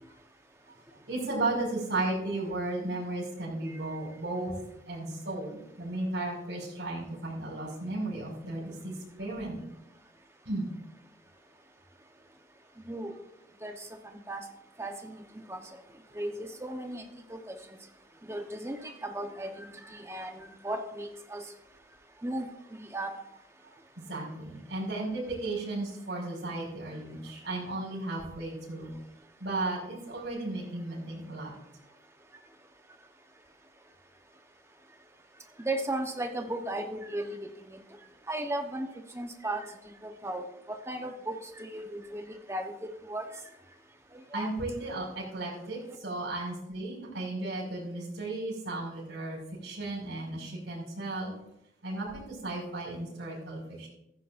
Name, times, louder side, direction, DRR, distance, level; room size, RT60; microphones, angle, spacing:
voice 1, 1.1-4.5 4.9-8.9 9.2-9.6 10.5-10.7 23.6-28.9 29.4-31.5 44.3-51.3 51.8-53.9, right 2 dB, 65° right, -2 dB, 5.4 m, -35 dB
voice 2, 12.8-13.2 13.6-14.4 14.8-15.8 16.1-17.8 18.2-21.5 22.2-23.2 35.6-37.8 38.3-38.9 39.1-43.4 44.1-44.5, right 1 dB, 15° right, 4 dB, 1.0 m, -36 dB
15.5 x 14.5 x 2.6 m, 0.83 s
head